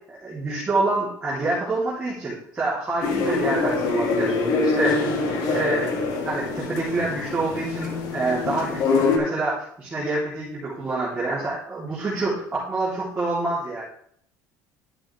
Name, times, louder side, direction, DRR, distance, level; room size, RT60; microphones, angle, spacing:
voice 1, 0.1-5.1 5.5-13.8, right 2 dB, 15° right, -9 dB, 3.0 m, -27 dB
sound 1, 3.0-9.2, left 3 dB, 60° left, 1.6 m, -24 dB
11.5 x 6.2 x 3.3 m, 0.65 s
cardioid pair, 160°, 7 cm